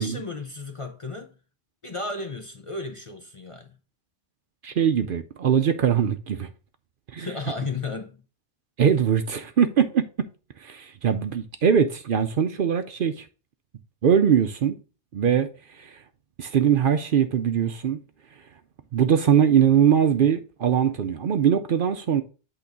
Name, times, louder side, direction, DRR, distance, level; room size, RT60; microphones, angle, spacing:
voice 1, 0.0-1.3 1.8-3.8 7.2-8.2, left 3 dB, 35° left, 0.6 m, -34 dB
voice 2, 4.6-6.5 7.1-7.3 8.8-10.0 10.6-13.3 14.0-14.8 15.1-16.0 16.4-18.0 18.9-22.2, right 8 dB, 60° right, 0.7 m, -21 dB
8.4 x 3.0 x 5.0 m
omnidirectional pair, 1.2 m